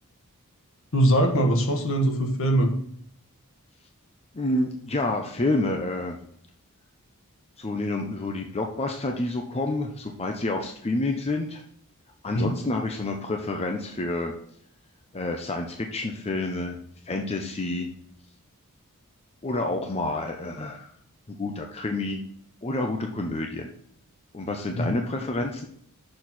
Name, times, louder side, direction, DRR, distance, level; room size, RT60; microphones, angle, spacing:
voice 1, 0.9-2.7 12.3-12.5 24.7-24.9, right 1 dB, 65° left, 4 dB, 1.3 m, -22 dB
voice 2, 4.3-6.2 7.6-11.6 12.2-14.3 15.1-16.8 17.1-17.9 19.4-20.9 21.3-22.2 22.6-23.7 24.3-25.7, left 2 dB, 30° left, 3 dB, 0.7 m, -28 dB
6.6 x 4.2 x 6.0 m, 0.66 s
head